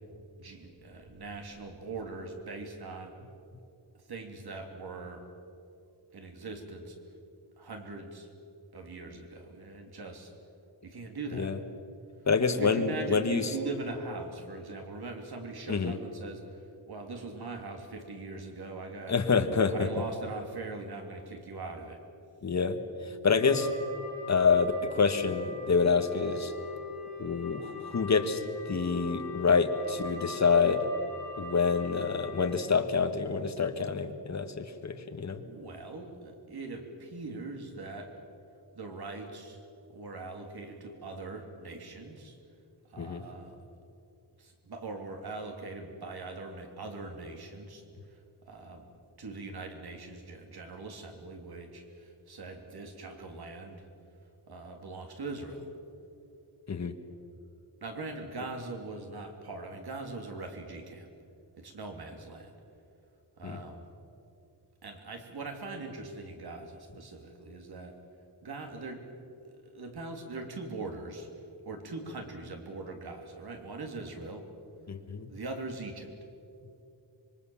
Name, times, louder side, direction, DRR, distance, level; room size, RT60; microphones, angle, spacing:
voice 1, 0.1-3.1 4.1-5.2 6.1-7.0 7.6-8.3 8.7-10.3 10.8-11.5 12.4-19.2 19.7-22.0 35.4-38.1 38.7-39.6 39.9-42.4 42.9-43.6 44.4-47.8 48.5-48.8 49.2-53.8 54.5-55.7 57.8-61.1 61.6-62.5 63.4-63.8 64.8-67.9 68.4-69.0 69.4-71.3 71.6-74.5 75.3-76.1, right 3 dB, 60° right, 3 dB, 3.3 m, -41 dB
voice 2, 12.2-13.5 15.7-16.0 19.1-19.9 22.4-22.8 23.2-23.7 24.3-26.5 27.2-30.9 31.4-35.4 43.0-43.3 56.7-56.9 63.4-63.6 74.9-75.3, left 5 dB, 40° left, 7 dB, 1.6 m, -27 dB
sound 1, 23.4-32.6, left 3 dB, 5° left, 5.9 m, -42 dB
26.0 x 23.0 x 7.3 m, 2.6 s
wide cardioid pair, 160°, 42 cm